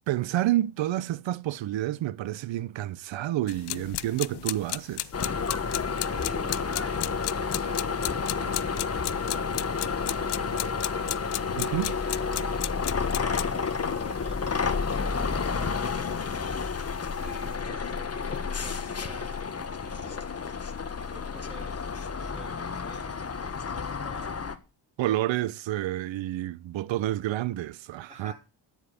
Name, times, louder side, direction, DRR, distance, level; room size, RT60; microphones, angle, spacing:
voice 1, 0.1-5.1 11.6-12.0 25.0-28.3, right 14 dB, 75° right, 0.8 m, -29 dB
sound 1, 3.5-17.6, left 15 dB, 60° left, 0.5 m, -37 dB
sound 2, 5.1-24.6, left 5 dB, 30° left, 1.3 m, -30 dB
voice 2, 6.1-7.0 7.4-10.9 11.3-12.7 13.1-16.1 17.1-20.3 21.0-21.9 22.2-24.4 28.1-28.3, right 1 dB, 15° right, 4.9 m, -49 dB
10.5 x 7.4 x 7.2 m
cardioid pair, 85°, 46 cm